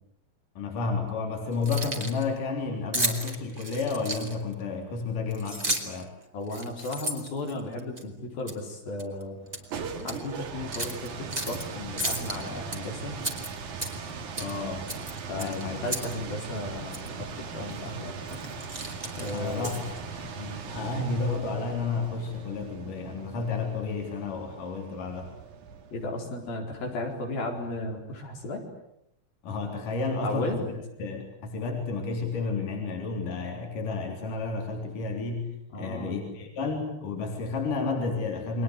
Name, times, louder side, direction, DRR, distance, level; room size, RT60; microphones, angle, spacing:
voice 1, 0.6-6.1 14.4-14.9 15.4-15.8 19.3-19.8 20.7-25.3 29.4-30.7 31.0-38.6, left 4 dB, 65° left, 2 dB, 5.2 m, -31 dB
Keys jangling, 1.5-2.2 2.9-4.5 5.3-6.0 6.5-8.0 8.5-8.7 9.0-9.6 10.0-10.2 10.7-11.6 12.0-12.8 13.2-14.1 14.4-14.6 14.9-16.1 16.4-16.5 16.9-17.1 17.7-17.9 18.3-20.0, right 1 dB, 10° right, 2.8 m, -33 dB
voice 2, 6.3-9.4 10.0-13.2 15.3-18.4 19.2-19.8 20.4-20.6 25.9-28.6 30.2-30.6 35.7-36.3, left 2 dB, 80° left, 1 dB, 6.2 m, -35 dB
sound 1, 9.4-26.1, right 5 dB, 60° right, 3.4 m, -39 dB
29.5 x 22.5 x 8.2 m, 0.79 s
omnidirectional pair, 4.1 m